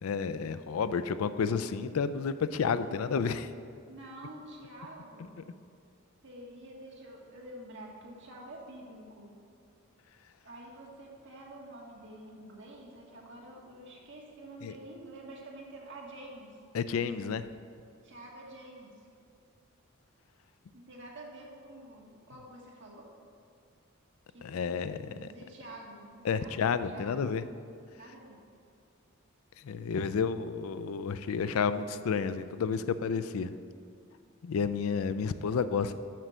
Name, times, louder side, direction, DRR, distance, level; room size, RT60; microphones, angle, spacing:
voice 1, 0.0-3.5 14.6-14.7 16.7-17.5 24.4-25.3 26.2-27.4 29.6-33.5 34.4-35.9, left 6 dB, 85° left, 13 dB, 0.4 m, -31 dB
voice 2, 3.9-5.3 6.2-9.3 10.4-16.6 18.0-19.0 20.7-23.1 24.3-27.2 28.0-28.4, right 1 dB, 60° right, -2 dB, 1.7 m, -48 dB
7.6 x 6.1 x 6.7 m, 2.4 s
head